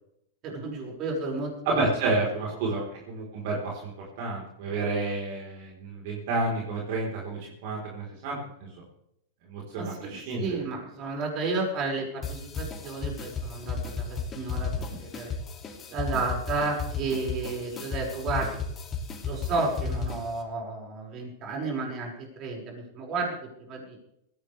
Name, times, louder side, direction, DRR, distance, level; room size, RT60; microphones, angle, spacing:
voice 1, 0.4-1.9 2.6-2.7 4.7-4.8 9.8-15.3 15.9-18.6 19.2-23.4 23.7-24.0, right 3 dB, 40° right, 0 dB, 5.8 m, -32 dB
voice 2, 1.7-3.9 4.2-8.4 9.5-10.6, right 3 dB, 60° right, -2 dB, 4.1 m, -30 dB
sound 1, 12.2-20.4, left 4 dB, 25° left, 2.6 m, -34 dB
19.0 x 16.0 x 3.4 m, 0.79 s
hypercardioid pair, 125°, 0 cm